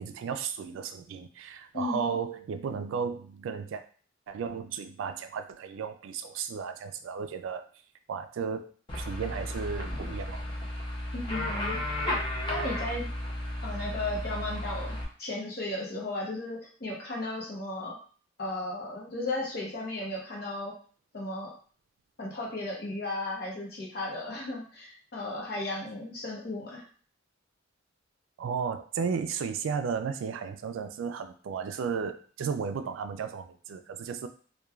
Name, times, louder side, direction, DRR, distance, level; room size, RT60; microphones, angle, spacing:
voice 1, 0.0-3.8 4.3-7.7 8.1-10.4 28.4-34.3, right 6 dB, 85° right, 8 dB, 0.3 m, -34 dB
voice 2, 1.7-2.2 11.1-11.8 12.5-13.1 13.6-18.0 18.4-20.7 21.1-21.5 22.2-26.8, left 2 dB, 55° left, -3 dB, 0.8 m, -35 dB
sound 1, 8.9-15.0, left 1 dB, 25° left, 0.5 m, -33 dB
3.0 x 2.2 x 2.3 m, 0.43 s
head